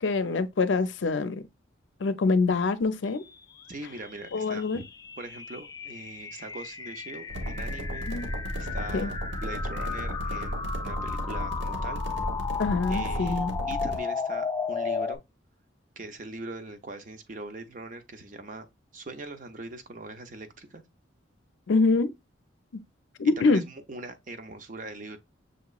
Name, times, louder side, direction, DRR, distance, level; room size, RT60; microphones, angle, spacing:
voice 1, 0.0-1.5 2.0-3.2 4.3-4.8 8.1-8.3 8.9-9.1 12.6-13.5 21.7-22.1 23.2-23.6, left 3 dB, 75° left, 0.5 m, -25 dB
sound 1, 3.3-15.2, left 5 dB, 20° left, 0.3 m, -35 dB
voice 2, 3.7-4.8 5.2-8.1 8.6-12.0 12.9-13.4 13.7-15.2 16.0-18.7 18.9-20.8 23.4-25.2, right 2 dB, 45° right, 0.6 m, -41 dB
sound 2, 7.3-14.0, equal, 65° right, 1.1 m, -34 dB
6.3 x 2.9 x 2.3 m
head